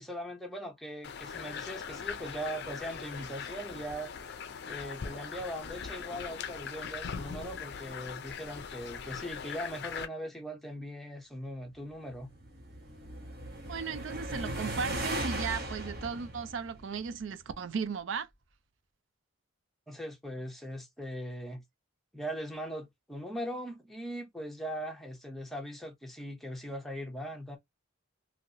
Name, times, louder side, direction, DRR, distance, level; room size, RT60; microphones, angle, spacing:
voice 1, 0.0-4.1 4.6-12.3 19.9-21.6 22.1-27.6, equal, ahead, 0.7 m, -40 dB
sound 1, 1.0-10.1, left 6 dB, 55° left, 0.5 m, -41 dB
sound 2, 11.9-17.4, right 1 dB, 50° right, 1.2 m, -38 dB
voice 2, 13.7-18.3, right 5 dB, 65° right, 0.4 m, -36 dB
2.9 x 2.8 x 2.7 m
head